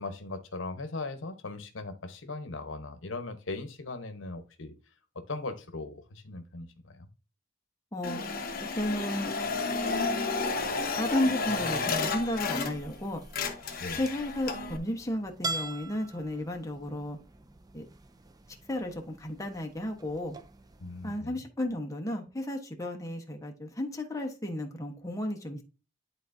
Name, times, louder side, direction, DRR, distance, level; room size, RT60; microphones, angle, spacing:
voice 1, 0.0-4.7 5.3-7.1 13.8-14.0 20.8-21.3, left 3 dB, 75° left, 8 dB, 1.0 m, -39 dB
voice 2, 7.9-8.2 8.7-9.3 11.0-13.2 14.0-17.2 17.7-17.8 18.7-20.4 21.0-25.6, left 1 dB, 15° left, 2 dB, 1.1 m, -33 dB
sound 1, 8.0-13.0 13.2-14.8, left 4 dB, 50° left, 1.0 m, -32 dB
sound 2, 9.1-21.2, right 2 dB, 20° right, 0.5 m, -45 dB
11.0 x 4.0 x 2.6 m, 0.32 s
head